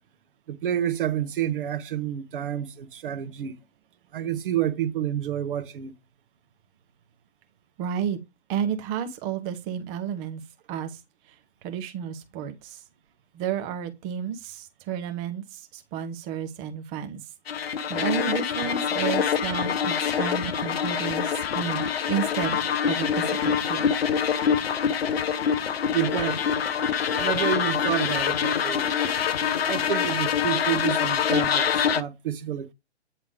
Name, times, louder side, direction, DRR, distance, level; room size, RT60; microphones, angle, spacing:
voice 1, 0.5-3.6 4.1-5.9 25.9-26.4 27.1-28.9 29.2-29.3 29.6-32.7, right 10 dB, 50° right, 1.2 m, -29 dB
voice 2, 7.8-8.2 8.5-10.4 10.7-11.0 11.6-12.8 13.3-17.2 17.6-22.6 22.9-23.9, right 8 dB, 10° right, 0.4 m, -31 dB
sound 1, 17.5-32.0, left 7 dB, 60° left, 0.9 m, -25 dB
9.0 x 3.3 x 4.9 m
figure-of-eight pair, 125°, 35 cm